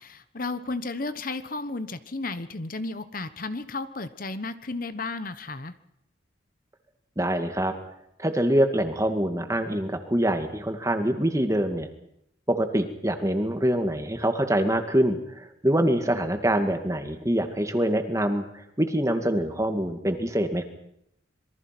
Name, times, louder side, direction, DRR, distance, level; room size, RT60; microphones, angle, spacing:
voice 1, 0.0-5.7, left 3 dB, 45° left, 12 dB, 1.1 m, -33 dB
voice 2, 7.2-7.7 8.2-11.9 12.5-20.6, right 1 dB, 15° right, 6 dB, 2.2 m, -25 dB
26.5 x 23.0 x 6.1 m, 0.77 s
head